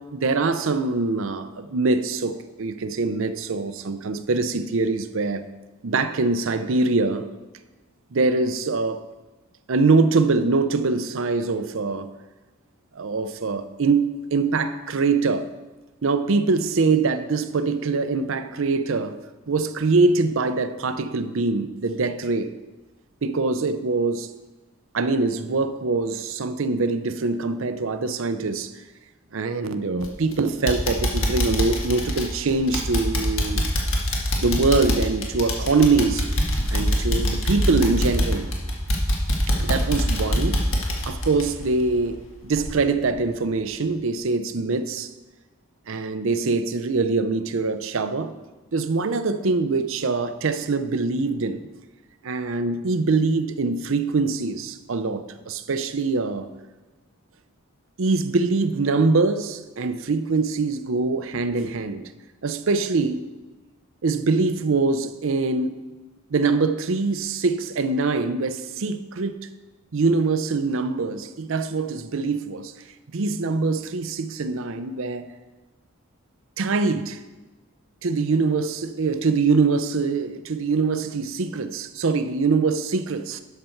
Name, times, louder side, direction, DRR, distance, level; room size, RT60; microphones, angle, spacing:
voice 1, 0.0-5.4 5.8-7.3 8.1-9.0 9.7-12.1 13.0-15.5 16.0-19.2 19.5-22.5 23.2-24.3 24.9-28.7 29.3-33.7 34.4-36.3 36.7-38.5 39.6-40.6 41.0-45.1 45.9-48.3 48.7-51.7 52.2-56.5 58.0-62.1 62.4-63.2 64.0-65.7 66.3-69.4 69.9-72.7 73.1-75.3 76.6-77.2 78.0-83.4, right 3 dB, 60° right, 10 dB, 0.6 m, -23 dB
sound 1, 30.0-30.3 30.7-42.2 42.6-42.7 43.2-43.3, equal, 60° left, 1.6 m, -24 dB
11.5 x 6.7 x 4.5 m, 1.2 s
head